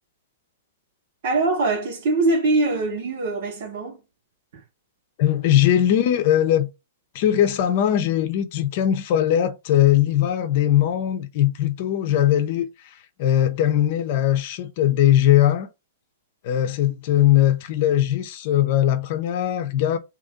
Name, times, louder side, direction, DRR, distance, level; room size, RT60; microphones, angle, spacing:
voice 1, 1.2-4.0 4.5-4.6, right 2 dB, 60° right, 1.4 m, -22 dB
voice 2, 5.2-6.7 7.1-15.7 16.4-20.0, left 11 dB, 50° left, 0.7 m, -20 dB
2.9 x 2.6 x 3.6 m
hypercardioid pair, 140°, 0 cm